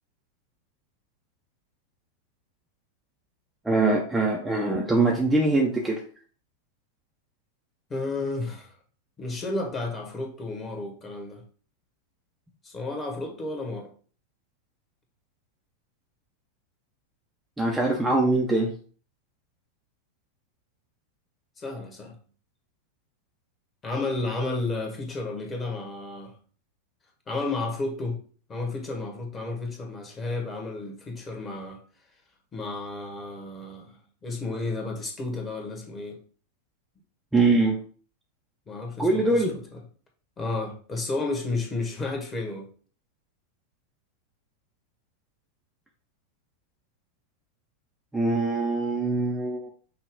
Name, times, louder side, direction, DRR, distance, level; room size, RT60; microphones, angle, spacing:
voice 1, 3.6-6.0 17.6-18.7 37.3-37.8 39.0-39.6 48.1-49.7, right 2 dB, 5° right, -1 dB, 0.7 m, -23 dB
voice 2, 7.9-8.7 9.2-11.4 12.6-13.9 21.6-22.1 23.8-26.3 27.3-28.2 28.5-31.8 32.5-36.2 38.7-39.6 40.4-42.7, left 2 dB, 20° left, 2 dB, 1.3 m, -32 dB
5.6 x 2.3 x 3.6 m, 0.42 s
figure-of-eight pair, 90°, 0 cm